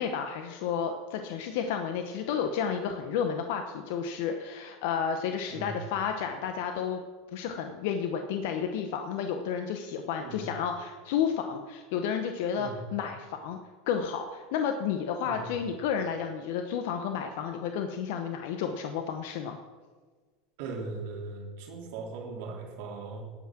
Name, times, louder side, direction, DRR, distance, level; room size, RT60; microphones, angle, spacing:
voice 1, 0.0-7.0 7.3-13.6 13.9-19.6, left 7 dB, 70° left, 5 dB, 0.9 m, -31 dB
voice 2, 20.6-23.2, right 3 dB, 70° right, 0 dB, 3.2 m, -39 dB
18.0 x 6.0 x 6.1 m, 1.4 s
supercardioid pair, 105°, 0 cm